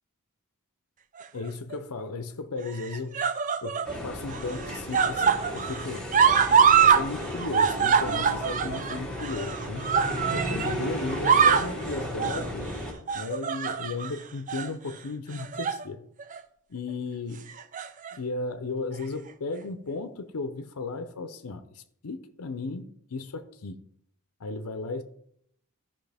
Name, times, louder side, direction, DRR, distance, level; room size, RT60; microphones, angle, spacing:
sound 1, 1.2-1.8 2.7-3.9 4.3-7.0 7.3-10.8 11.1-11.7 12.2-12.5 13.1-14.1 14.5-14.7 15.3-15.8 16.2-16.4 17.5-18.1 19.0-19.1, right 7 dB, 35° right, 0.4 m, -24 dB
voice 1, 1.3-3.3 3.6-6.1 6.8-9.9 10.3-12.7 13.1-16.1 16.7-17.5 18.1-23.8 24.4-25.0, left 3 dB, 75° left, 0.6 m, -35 dB
sound 2, 3.8-12.9, equal, 5° left, 2.0 m, -34 dB
14.0 x 5.6 x 3.4 m
head